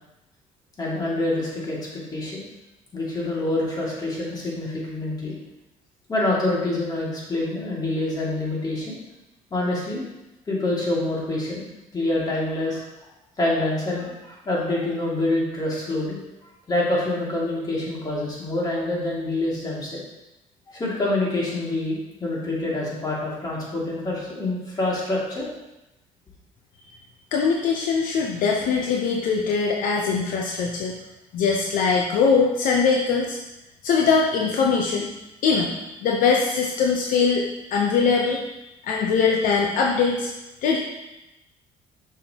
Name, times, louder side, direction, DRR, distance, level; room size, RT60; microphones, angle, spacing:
voice 1, 0.8-1.8 2.1-2.4 2.9-5.3 6.1-9.0 9.5-10.0 10.5-11.7 11.9-12.8 13.4-20.0 20.7-25.5, left 2 dB, 25° left, -5 dB, 2.4 m, -26 dB
voice 2, 27.3-30.9 31.3-33.4 33.8-35.1 35.4-37.4 37.7-38.4 38.8-40.3 40.6-40.8, left 5 dB, 70° left, 0 dB, 0.8 m, -21 dB
6.6 x 6.0 x 2.9 m, 0.97 s
cardioid pair, 110°, 15 cm